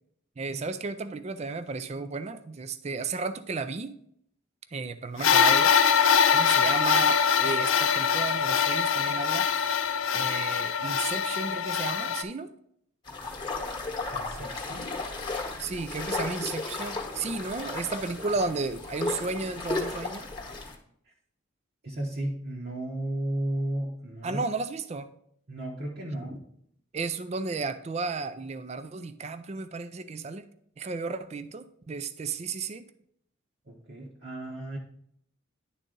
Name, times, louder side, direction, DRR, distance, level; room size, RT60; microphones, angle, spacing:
voice 1, 0.4-3.9 4.7-6.0 6.3-9.5 10.1-12.5 15.6-20.3 24.2-25.1 26.9-30.4 30.8-32.8, right 4 dB, 30° right, 12 dB, 0.4 m, -33 dB
sound 1, 5.2-12.2, left 7 dB, 70° left, 0.5 m, -23 dB
sound 2, 13.1-20.7, left 3 dB, 20° left, 1.0 m, -34 dB
voice 2, 14.1-14.9 21.8-24.5 25.5-26.4 33.7-34.8, right 1 dB, 50° right, -3 dB, 1.0 m, -34 dB
10.0 x 4.0 x 3.8 m, 0.69 s
head